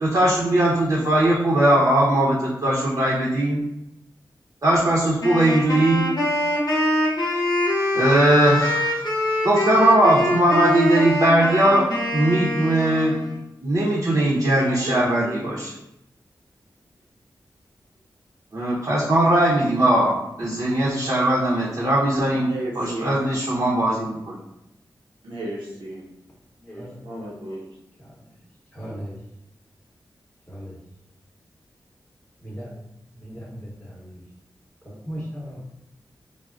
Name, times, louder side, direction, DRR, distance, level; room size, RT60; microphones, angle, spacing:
voice 1, 0.0-3.6 4.6-6.0 7.9-9.1 9.4-11.8 12.1-13.2 13.6-15.7 18.5-24.4, right 1 dB, 45° right, -6 dB, 0.6 m, -19 dB
Wind instrument woodwind instrument, 5.2-13.4, left 1 dB, 55° left, 0.8 m, -24 dB
voice 2, 14.6-15.6 22.5-23.2 25.2-26.1 27.0-27.7, right 1 dB, 90° right, -4 dB, 0.8 m, -33 dB
voice 3, 28.8-29.1 30.5-30.7 32.4-32.7 33.2-33.6 34.0-34.2 34.9-35.7, equal, 15° left, -5 dB, 0.8 m, -36 dB
3.3 x 2.1 x 2.4 m, 0.86 s
cardioid pair, 45°, 8 cm